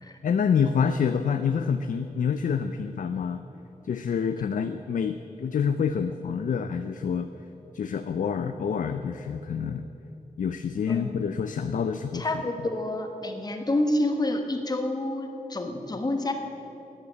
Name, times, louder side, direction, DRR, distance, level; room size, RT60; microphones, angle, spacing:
voice 1, 0.2-3.4 3.8-7.3 7.7-9.8 10.4-12.3, left 6 dB, 65° left, 9 dB, 0.5 m, -27 dB
voice 2, 10.9-11.3 12.1-16.3, left 1 dB, 25° left, 5 dB, 1.2 m, -28 dB
12.0 x 9.9 x 8.5 m, 3.0 s
wide cardioid pair, 135°, 14 cm